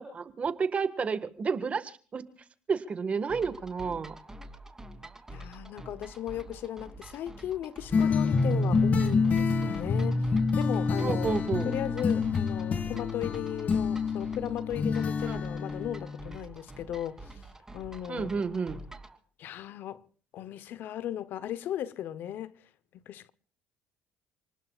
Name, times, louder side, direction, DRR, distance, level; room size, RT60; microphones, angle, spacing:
voice 1, 0.0-2.3 2.7-4.1 11.0-11.7 15.2-15.4 18.1-18.8, right 5 dB, 35° right, 1.6 m, -31 dB
sound 1, 3.3-19.2, right 1 dB, 15° right, 2.9 m, -47 dB
voice 2, 5.3-11.4 11.6-17.4 17.7-18.4 19.4-20.0 20.3-22.5 22.9-23.3, left 11 dB, 60° left, 0.9 m, -37 dB
sound 2, 7.9-16.4, left 4 dB, 40° left, 1.8 m, -27 dB
28.5 x 19.5 x 2.4 m
supercardioid pair, 75°, 4 cm